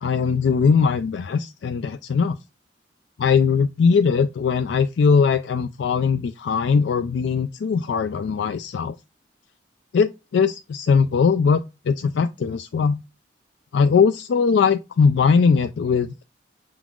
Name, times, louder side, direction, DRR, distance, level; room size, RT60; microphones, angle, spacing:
voice 1, 0.0-2.4 3.2-8.9 9.9-13.0 13.7-16.2, left 5 dB, 85° left, 0.4 m, -20 dB
5.9 x 3.8 x 2.3 m
head